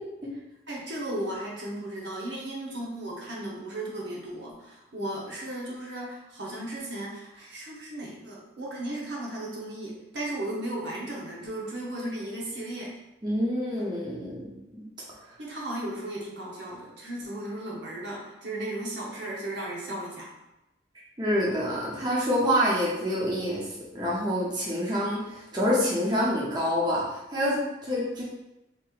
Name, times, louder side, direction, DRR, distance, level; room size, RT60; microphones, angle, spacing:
voice 1, 0.7-12.9 15.4-20.3, right 1 dB, 70° right, -4 dB, 0.9 m, -35 dB
voice 2, 13.2-14.6 21.2-23.7 23.9-28.2, equal, 25° right, -6 dB, 0.7 m, -27 dB
4.2 x 2.9 x 2.4 m, 0.94 s
head